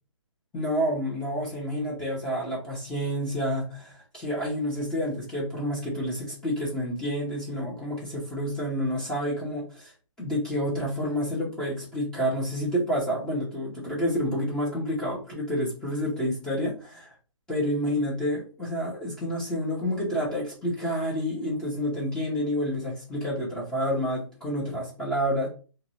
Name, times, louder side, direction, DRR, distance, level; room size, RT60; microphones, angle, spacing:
voice 1, 0.5-9.9 10.2-17.1 17.5-25.5, equal, 5° left, -6 dB, 0.5 m, -29 dB
2.5 x 2.0 x 2.9 m, 0.35 s
hypercardioid pair, 160°, 17 cm